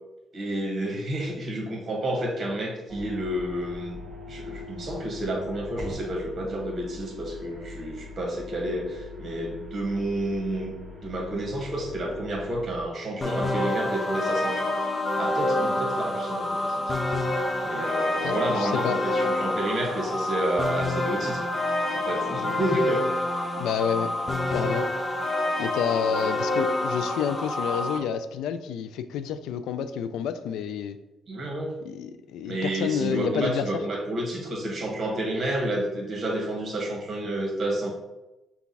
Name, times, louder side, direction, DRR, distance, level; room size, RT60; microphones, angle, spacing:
voice 1, 0.3-4.0 4.3-10.7 11.0-14.7 15.2-16.9 17.6-21.5 21.9-23.3 31.3-31.8 32.4-37.9, right 1 dB, 45° right, 0 dB, 1.5 m, -30 dB
sound 1, 2.9-12.8, left 3 dB, 15° right, 1.4 m, -41 dB
sound 2, 13.2-28.0, left 1 dB, 30° left, 0.6 m, -27 dB
voice 2, 18.2-19.0 23.6-24.2 24.5-24.9 25.6-31.0 31.9-33.7, left 8 dB, 85° left, 11 dB, 0.3 m, -29 dB
5.7 x 2.3 x 4.0 m, 0.98 s
cardioid pair, 90°, 0 cm